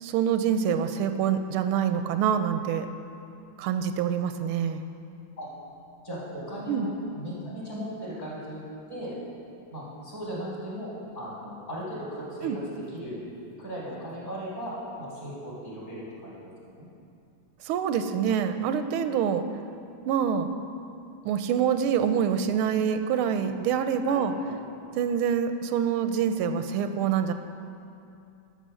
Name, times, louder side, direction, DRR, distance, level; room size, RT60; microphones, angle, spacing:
voice 1, 0.0-2.9 3.6-4.8 6.7-6.9 12.4-12.6 17.7-19.4 20.0-20.5 21.2-24.3 25.0-27.3, right 8 dB, 90° right, 9 dB, 1.5 m, -26 dB
voice 2, 6.0-8.6 8.9-9.2 9.7-13.2 13.6-16.9 24.1-24.6, equal, 40° left, -6 dB, 3.7 m, -37 dB
11.0 x 7.3 x 6.3 m, 2.6 s
omnidirectional pair, 2.3 m